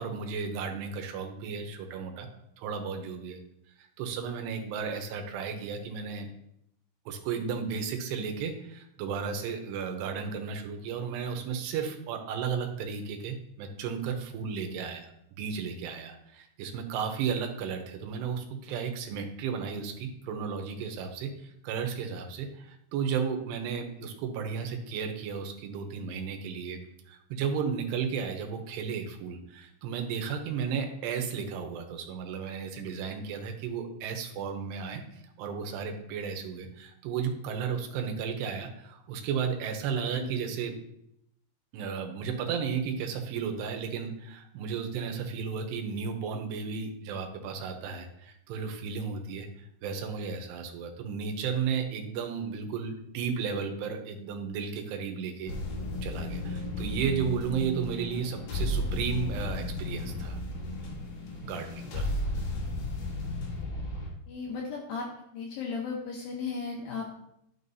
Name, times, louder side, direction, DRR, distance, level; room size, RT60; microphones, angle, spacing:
voice 1, 0.0-2.3 2.6-3.4 3.8-6.3 7.1-26.8 27.1-40.7 41.7-55.5 56.0-60.4 61.4-62.1, right 6 dB, 75° right, 4 dB, 2.7 m, -34 dB
sound 1, 55.5-64.1, left 1 dB, 60° left, 2.3 m, -34 dB
voice 2, 64.3-65.1 65.3-67.2, left 5 dB, 75° left, -1 dB, 2.1 m, -35 dB
11.0 x 6.0 x 2.7 m, 0.78 s
omnidirectional pair, 5.2 m